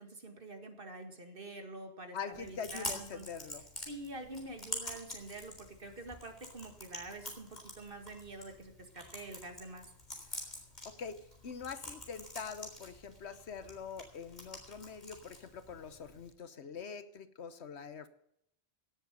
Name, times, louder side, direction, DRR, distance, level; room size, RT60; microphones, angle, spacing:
voice 1, 0.0-3.3 3.9-9.9, right 2 dB, 55° right, 6 dB, 2.2 m, -47 dB
voice 2, 2.1-3.6 10.8-18.1, left 6 dB, 85° left, 12 dB, 1.3 m, -44 dB
Chewing mastication, 2.3-16.3, left 1 dB, 40° left, 3.8 m, -47 dB
17.0 x 7.8 x 6.8 m, 0.76 s
omnidirectional pair, 1.1 m